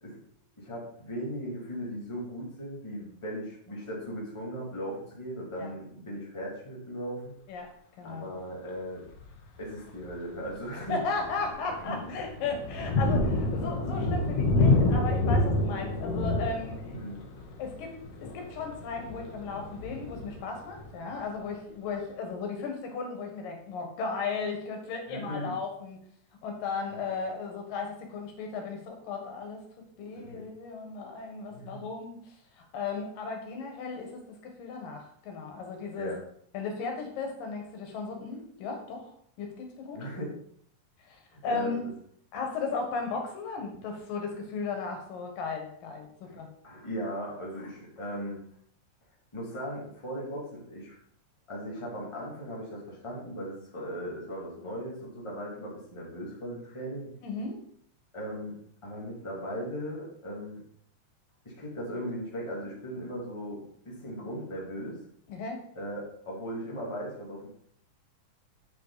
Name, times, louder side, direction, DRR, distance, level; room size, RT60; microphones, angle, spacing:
voice 1, 0.6-7.3 8.0-9.0 9.6-11.0 11.9-12.1 16.8-17.2 25.1-25.5 27.0-27.1 30.1-30.4 31.5-31.8 35.9-36.2 39.9-40.3 41.3-41.7 46.3-46.4 46.6-48.4 49.3-51.0 51.5-57.1 58.1-60.6 61.4-65.0 65.7-67.5, equal, 10° left, -4 dB, 2.0 m, -38 dB
Thunder, 9.1-9.4 10.0-10.1 10.6-21.1, left 2 dB, 60° left, 2.1 m, -29 dB
voice 2, 10.9-16.9 17.6-26.0 26.4-29.6 30.0-36.1 36.5-40.0 41.0-41.8 42.3-46.5 57.2-57.6 65.3-65.6, left 4 dB, 85° left, 3 dB, 3.1 m, -35 dB
7.9 x 6.1 x 4.0 m, 0.67 s
omnidirectional pair, 3.8 m